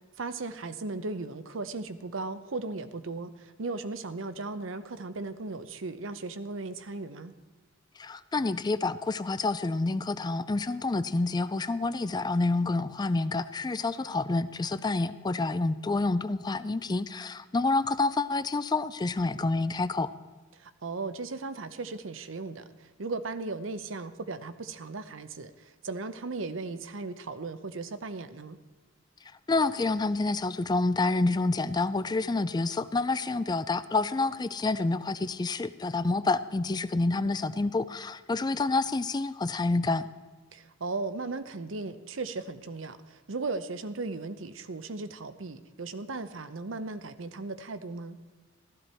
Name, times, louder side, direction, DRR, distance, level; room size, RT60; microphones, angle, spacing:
voice 1, 0.2-7.3 20.6-28.6 40.5-48.2, right 3 dB, 80° right, 11 dB, 0.8 m, -37 dB
voice 2, 8.0-20.1 29.5-40.1, left 3 dB, 20° left, 14 dB, 0.4 m, -28 dB
15.0 x 12.5 x 4.4 m, 1.3 s
head